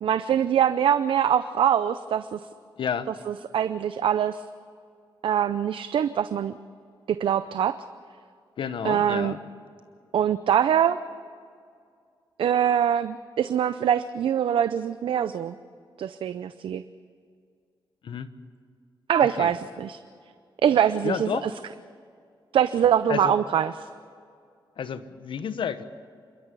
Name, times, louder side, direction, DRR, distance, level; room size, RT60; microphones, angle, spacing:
voice 1, 0.0-2.4 3.5-4.4 5.2-6.5 7.1-7.8 8.8-9.3 10.1-11.0 12.4-15.5 16.0-16.8 19.1-20.0 20.6-21.5 22.5-23.7, right 9 dB, 80° right, 13 dB, 0.6 m, -23 dB
voice 2, 2.8-3.1 8.6-9.4 18.0-18.3 19.2-19.5 21.0-21.5 23.1-23.4 24.8-25.8, left 7 dB, 75° left, 11 dB, 1.1 m, -31 dB
27.0 x 13.0 x 8.3 m, 2.3 s
cardioid pair, 90°, 9 cm